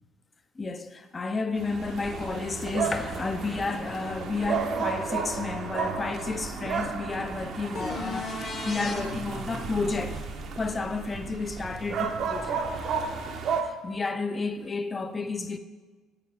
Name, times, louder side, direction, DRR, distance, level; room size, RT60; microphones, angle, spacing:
voice 1, 0.6-10.2 10.6-12.6 13.6-15.6, left 3 dB, 25° left, 0.4 m, -31 dB
sound 1, 1.6-13.6, right 5 dB, 50° right, 0.6 m, -33 dB
sound 2, 7.7-9.0 12.9-13.0, left 3 dB, 45° left, 1.0 m, -35 dB
7.3 x 4.8 x 4.4 m
figure-of-eight pair, 55°, 0 cm